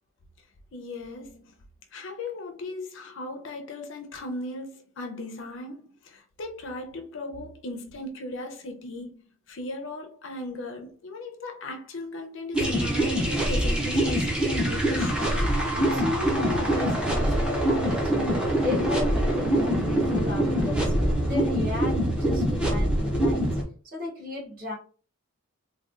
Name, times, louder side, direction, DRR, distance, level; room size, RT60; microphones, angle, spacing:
voice 1, 0.7-1.5 1.9-9.1 9.5-15.6, left 2 dB, 60° left, 0.5 m, -37 dB
sound 1, 12.5-23.6, right 1 dB, 5° right, 0.5 m, -24 dB
voice 2, 15.7-20.9 21.2-23.6 23.8-24.7, left 3 dB, 40° right, 1.3 m, -35 dB
3.4 x 2.3 x 2.4 m
head